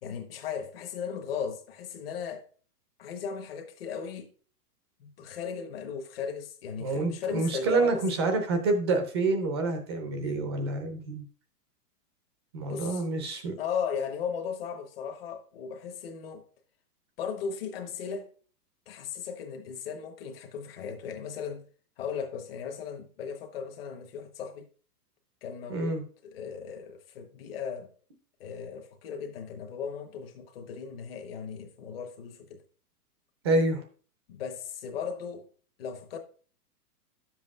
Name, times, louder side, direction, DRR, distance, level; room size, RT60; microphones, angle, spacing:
voice 1, 0.0-2.4 3.0-4.3 5.0-8.0 12.7-13.0 13.6-16.4 17.2-18.3 18.9-21.7 22.0-24.7 25.4-27.9 28.4-32.6 34.3-35.5 35.8-36.2, left 7 dB, 35° left, 1.1 m, -37 dB
voice 2, 6.8-11.2 12.5-13.6 25.7-26.0 33.4-33.8, right 3 dB, 15° right, 0.5 m, -27 dB
10.0 x 7.5 x 2.4 m
hypercardioid pair, 165°, 47 cm